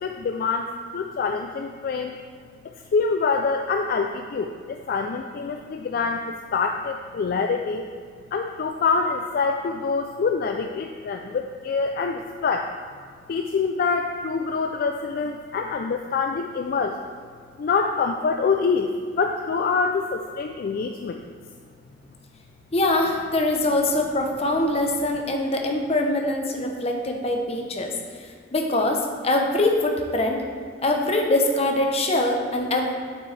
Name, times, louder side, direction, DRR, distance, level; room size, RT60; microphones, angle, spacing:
voice 1, 0.0-2.1 2.9-7.9 8.3-12.7 13.3-17.0 17.6-18.9 19.2-21.2, left 4 dB, 55° left, 4 dB, 0.3 m, -25 dB
voice 2, 22.7-27.9 28.5-30.4 30.8-32.9, left 1 dB, 35° left, 2 dB, 0.7 m, -23 dB
6.9 x 6.1 x 3.2 m, 2.1 s
head